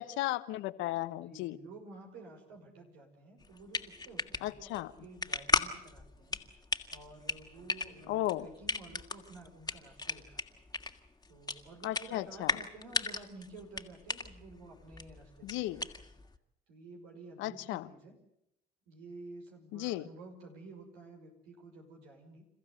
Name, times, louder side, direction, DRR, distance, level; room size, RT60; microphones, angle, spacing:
voice 1, 0.0-1.6 4.4-4.9 8.1-8.5 11.8-12.6 15.4-15.9 17.4-17.9 19.7-20.1, left 16 dB, 75° left, 13 dB, 1.1 m, -35 dB
voice 2, 1.1-6.6 6.9-10.7 11.3-16.0 16.7-18.2 18.9-22.4, right 2 dB, 80° right, 2 dB, 5.9 m, -52 dB
sound 1, 3.4-16.4, left 3 dB, 20° left, 2.1 m, -37 dB
28.5 x 15.0 x 8.2 m, 0.80 s
hypercardioid pair, 60°, 20 cm